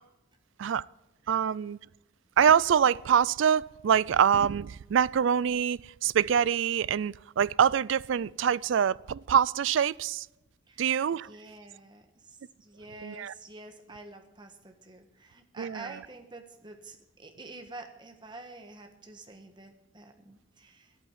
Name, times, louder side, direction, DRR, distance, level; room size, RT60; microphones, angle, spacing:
voice 1, 1.3-1.8 2.4-10.3 10.8-11.3 13.0-13.3 15.6-16.0, right 8 dB, 70° right, 0.3 m, -25 dB
voice 2, 11.3-21.0, right 2 dB, 25° right, 1.4 m, -48 dB
11.0 x 8.8 x 9.0 m
head